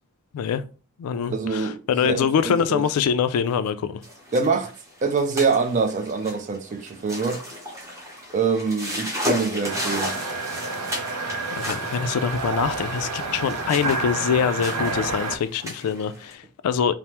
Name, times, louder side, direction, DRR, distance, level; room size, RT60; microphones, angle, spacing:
voice 1, 0.3-0.6 1.0-4.0 11.5-17.0, left 7 dB, 80° left, 0.3 m, -24 dB
voice 2, 1.3-2.8 4.3-4.7 5.0-7.4 8.3-10.2, right 4 dB, 35° right, 0.4 m, -25 dB
sound 1, 4.0-16.3, left 1 dB, 15° right, 0.8 m, -34 dB
sound 2, 9.6-15.4, right 3 dB, 90° right, 0.4 m, -29 dB
3.3 x 2.0 x 2.8 m
head